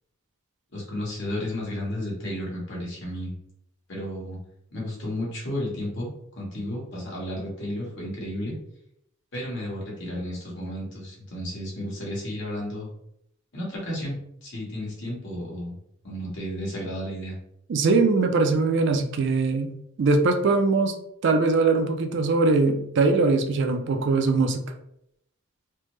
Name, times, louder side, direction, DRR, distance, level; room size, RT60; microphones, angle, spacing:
voice 1, 0.7-3.3 3.9-4.4 4.7-6.1 6.4-8.5 9.3-12.9 13.5-15.8 16.0-17.4, left 1 dB, 55° left, -4 dB, 1.3 m, -32 dB
voice 2, 17.7-20.9 21.2-24.6, right 3 dB, 55° right, 5 dB, 0.4 m, -21 dB
3.2 x 2.1 x 3.1 m, 0.76 s
head